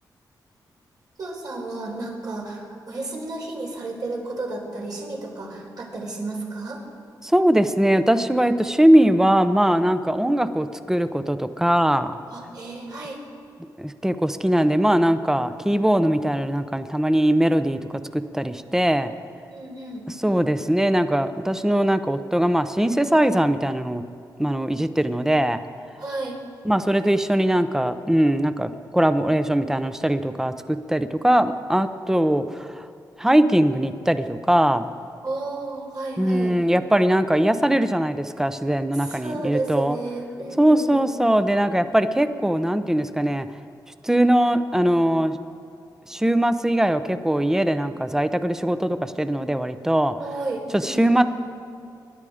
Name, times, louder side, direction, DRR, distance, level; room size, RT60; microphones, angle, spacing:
voice 1, 1.2-6.8 12.3-13.2 19.5-20.1 26.0-26.4 35.2-36.6 38.9-41.2 50.2-51.2, right 2 dB, 60° right, -2 dB, 4.0 m, -32 dB
voice 2, 7.2-12.1 13.8-17.8 18.1-19.1 20.2-24.0 24.4-25.6 26.6-32.9 33.2-34.9 36.2-40.0 40.6-43.5 44.0-45.4 46.1-50.1 50.7-51.2, right 1 dB, 5° right, 11 dB, 0.7 m, -21 dB
25.0 x 11.0 x 5.0 m, 2.4 s
cardioid pair, 90°, 8 cm